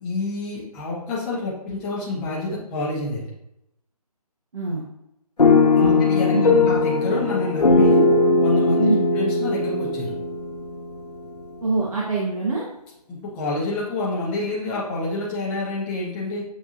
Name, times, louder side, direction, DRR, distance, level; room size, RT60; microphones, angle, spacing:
voice 1, 0.0-3.3 5.7-8.0 8.4-10.1 13.1-16.4, left 2 dB, 5° left, -6 dB, 0.4 m, -28 dB
voice 2, 4.5-4.8 5.8-6.7 8.8-9.1 11.6-12.6, right 2 dB, 60° right, -5 dB, 1.1 m, -25 dB
sound 1, 5.4-11.4, left 3 dB, 85° left, 0.7 m, -19 dB
7.6 x 2.6 x 2.5 m, 0.84 s
figure-of-eight pair, 150°, 20 cm